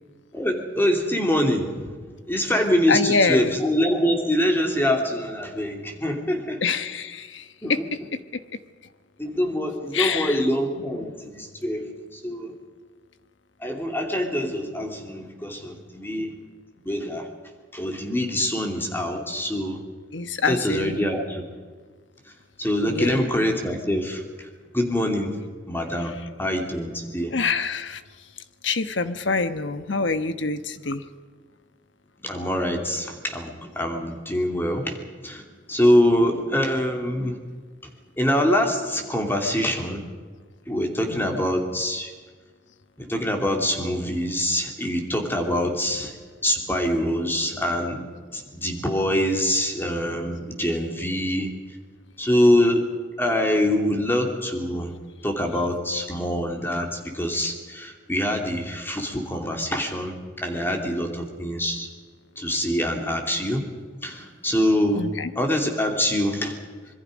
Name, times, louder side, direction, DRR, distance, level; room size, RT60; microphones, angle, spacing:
voice 1, 0.3-2.0 2.2-6.6 7.6-7.9 9.2-12.5 13.6-16.3 16.8-17.3 17.7-19.8 20.4-21.4 22.6-25.4 25.7-27.4 32.2-37.4 38.2-40.0 40.7-42.1 43.0-46.1 46.4-51.5 52.2-52.9 53.2-54.9 55.2-61.9 62.4-63.7 64.0-65.1 65.3-66.6, equal, 10° left, 3 dB, 2.8 m, -24 dB
voice 2, 2.9-3.6 6.6-7.8 9.9-10.4 20.1-21.1 22.8-23.3 27.3-28.0 28.6-31.0 41.1-41.4 64.9-65.3, left 4 dB, 75° left, 11 dB, 1.2 m, -25 dB
26.0 x 22.0 x 5.2 m, 1.5 s
head